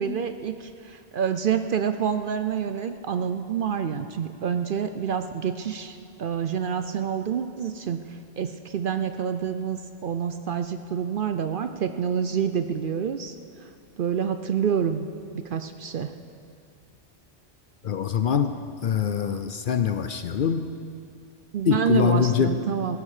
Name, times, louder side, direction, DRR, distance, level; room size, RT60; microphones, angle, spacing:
voice 1, 0.0-8.0 8.4-13.4 14.0-15.1 15.3-16.1 19.2-19.4 21.5-23.0, right 7 dB, 60° right, 9 dB, 0.6 m, -27 dB
voice 2, 17.8-20.7 21.7-22.6, left 7 dB, 55° left, 9 dB, 0.6 m, -24 dB
16.5 x 14.5 x 4.9 m, 2.6 s
omnidirectional pair, 1.2 m